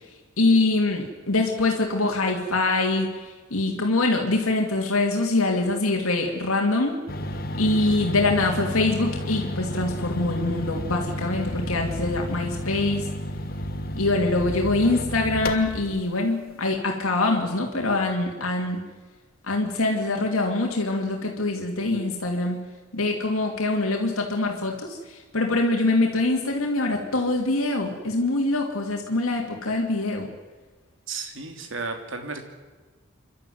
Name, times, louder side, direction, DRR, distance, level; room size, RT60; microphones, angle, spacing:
voice 1, 0.4-3.1 3.5-7.0 7.6-13.0 14.0-18.8 19.4-22.6 22.9-25.0 25.3-30.3, left 2 dB, 90° left, 1 dB, 2.7 m, -24 dB
sound 1, 7.1-16.0, equal, 45° left, 1.4 m, -32 dB
voice 2, 31.1-32.4, right 4 dB, 70° right, 5 dB, 2.9 m, -33 dB
28.5 x 12.5 x 9.5 m, 1.3 s
head